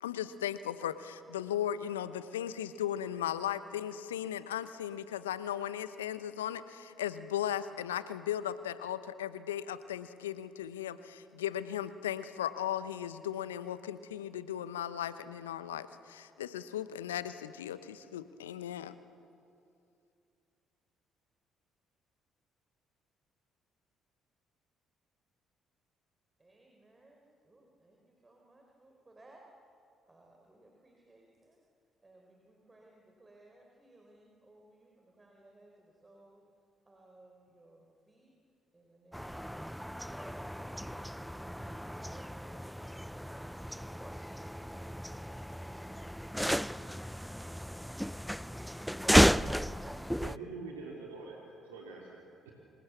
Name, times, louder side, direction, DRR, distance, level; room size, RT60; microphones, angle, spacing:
voice 1, 0.0-19.0, left 10 dB, 80° left, 14 dB, 0.9 m, -37 dB
voice 2, 26.4-29.5 30.1-31.6 32.0-36.4 36.9-38.3 38.7-40.1 40.4-42.6 43.1-46.7, right 2 dB, 25° right, 0 dB, 4.5 m, -61 dB
sound 1, 39.1-50.4, equal, ahead, 0.5 m, -33 dB
voice 3, 50.2-52.5, right 3 dB, 80° right, -2 dB, 3.2 m, -45 dB
28.5 x 26.5 x 7.2 m, 2.5 s
figure-of-eight pair, 45°, 0 cm